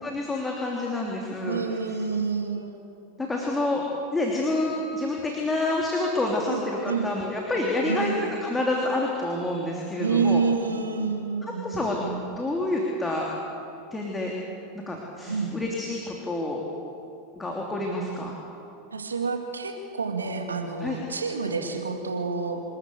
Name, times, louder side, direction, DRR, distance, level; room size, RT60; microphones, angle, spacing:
voice 1, 0.0-1.6 3.2-3.8 4.1-8.1 8.4-10.4 11.4-12.0 12.3-13.3 13.9-14.3 14.7-16.6 17.3-18.3 20.8-21.0, left 2 dB, 15° left, -1 dB, 3.1 m, -28 dB
voice 2, 1.4-2.8 6.5-7.1 7.8-8.2 10.0-12.2 15.3-15.5 18.9-22.6, right 5 dB, 85° right, 4 dB, 2.2 m, -28 dB
26.5 x 13.0 x 8.2 m, 2.7 s
hypercardioid pair, 90°, 0 cm